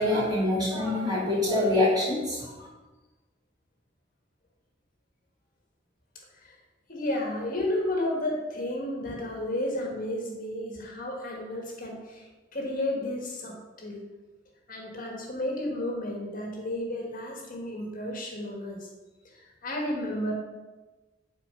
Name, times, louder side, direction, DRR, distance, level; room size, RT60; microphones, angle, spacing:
voice 1, 0.0-2.7, left 1 dB, 20° right, -7 dB, 2.9 m, -25 dB
voice 2, 6.9-14.0 14.7-18.9 19.2-20.3, left 1 dB, 45° left, 0 dB, 1.4 m, -32 dB
8.1 x 4.4 x 5.5 m, 1.2 s
head